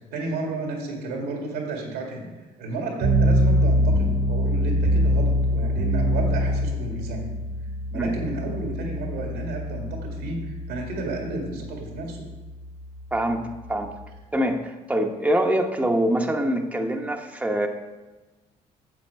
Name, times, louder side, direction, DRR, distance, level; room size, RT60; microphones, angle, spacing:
voice 1, 0.1-2.3 2.6-7.4 7.9-12.2, right 2 dB, 90° right, 1 dB, 2.0 m, -32 dB
sound 1, 3.0-14.2, equal, 60° right, 1.1 m, -24 dB
voice 2, 13.1-13.4 13.7-13.9 14.3-17.7, right 1 dB, 10° right, 3 dB, 0.9 m, -24 dB
7.4 x 7.2 x 4.6 m, 1.2 s
supercardioid pair, 70°, 17 cm